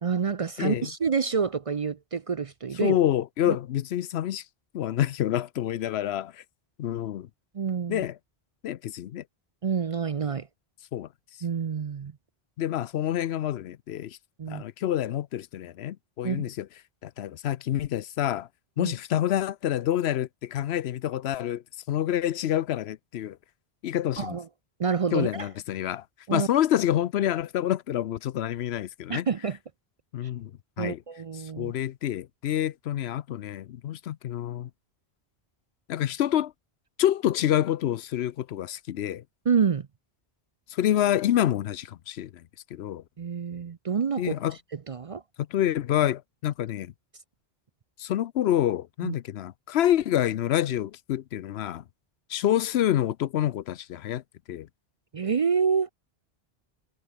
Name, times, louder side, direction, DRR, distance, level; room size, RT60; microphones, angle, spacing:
voice 1, 0.0-3.0 3.5-3.6 7.5-8.0 9.6-10.5 11.4-12.1 14.4-14.6 16.2-16.4 18.8-18.9 24.2-24.4 24.8-25.5 26.3-26.5 29.1-29.6 30.8-31.7 39.5-39.9 43.2-44.4 44.9-45.2 49.0-49.1 55.1-55.9, right 6 dB, 45° right, 0.5 m, -27 dB
voice 2, 0.6-0.9 2.8-4.4 4.7-6.4 6.8-7.3 7.9-8.2 8.6-9.2 10.9-11.1 12.6-14.2 14.5-16.7 17.0-18.5 18.8-23.4 23.8-24.4 25.1-26.0 26.3-29.3 30.1-30.5 30.8-31.0 31.4-34.7 35.9-36.5 37.0-39.2 40.7-43.0 44.2-44.6 45.4-46.9 48.0-51.8 52.3-54.2 54.5-54.7, left 11 dB, 90° left, 0.9 m, -27 dB
omnidirectional pair, 1.1 m